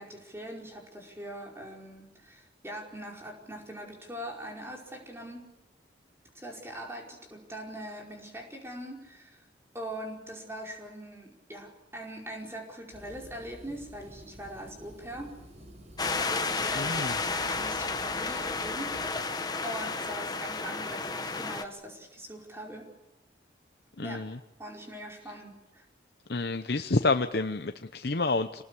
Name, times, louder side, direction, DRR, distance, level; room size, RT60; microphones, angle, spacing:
voice 1, 0.0-5.4 6.3-9.4 9.7-15.4 16.1-22.9 24.0-24.2 24.6-25.9, right 1 dB, 15° right, 0 dB, 4.9 m, -42 dB
sound 1, 12.9-19.2, equal, 40° right, 4.7 m, -50 dB
sound 2, 16.0-21.6, left 4 dB, 20° left, 1.3 m, -32 dB
voice 2, 16.7-17.2 24.0-24.4 26.3-28.6, left 3 dB, 60° left, 8 dB, 0.9 m, -29 dB
27.0 x 19.5 x 8.5 m, 0.95 s
head